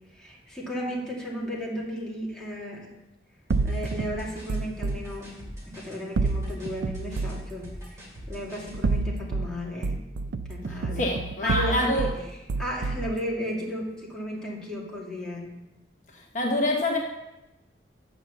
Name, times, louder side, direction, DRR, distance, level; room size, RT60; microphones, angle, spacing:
voice 1, 0.1-2.9 3.6-5.4 5.7-10.0 10.5-11.1 11.4-12.1 12.6-15.5, equal, 5° left, -5 dB, 2.2 m, -34 dB
sound 1, 3.5-8.8, equal, 15° right, 3.1 m, -43 dB
sound 2, 3.5-5.0 6.2-7.5 8.7-9.5 9.8-12.2 12.5-13.1, right 3 dB, 80° right, 0.4 m, -28 dB
voice 2, 10.7-12.1 16.1-17.0, left 1 dB, 45° left, 0 dB, 0.9 m, -26 dB
8.2 x 6.1 x 6.9 m, 0.98 s
head